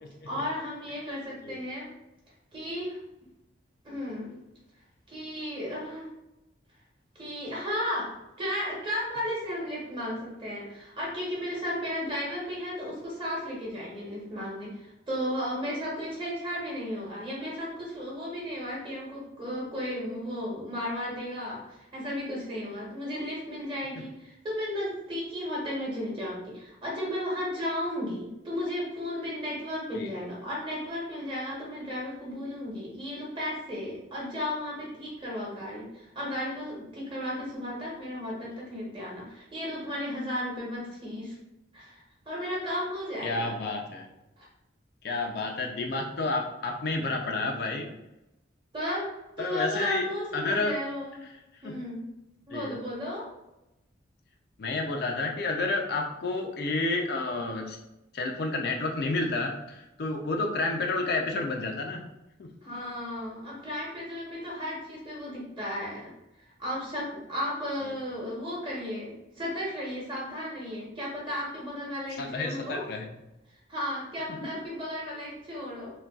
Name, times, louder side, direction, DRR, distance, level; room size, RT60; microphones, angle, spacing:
voice 1, 0.3-1.9 2.5-3.0 3.8-4.4 5.1-6.1 7.1-41.4 41.7-43.6 44.4-44.5 48.7-51.2 51.6-52.0 52.5-53.3 62.6-66.1 66.4-72.8 73.7-75.9, equal, 25° right, -5 dB, 1.0 m, -34 dB
voice 2, 43.2-44.1 45.0-47.9 49.4-50.0 50.3-50.7 51.6-51.8 52.5-52.8 54.6-57.8 58.1-62.0 62.4-62.5 72.2-73.1 74.4-74.5, left 3 dB, 55° left, 2 dB, 0.4 m, -30 dB
3.8 x 2.2 x 2.3 m, 0.92 s
head